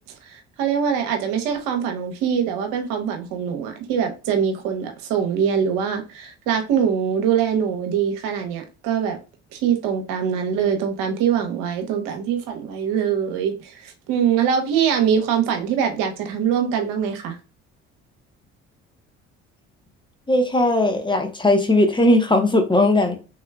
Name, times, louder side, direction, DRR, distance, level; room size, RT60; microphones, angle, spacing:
voice 1, 0.2-9.2 9.5-17.4, right 8 dB, 75° right, 0.8 m, -23 dB
voice 2, 20.3-23.2, left 1 dB, 15° left, 0.8 m, -18 dB
3.4 x 3.0 x 2.3 m
hypercardioid pair, 60°, 32 cm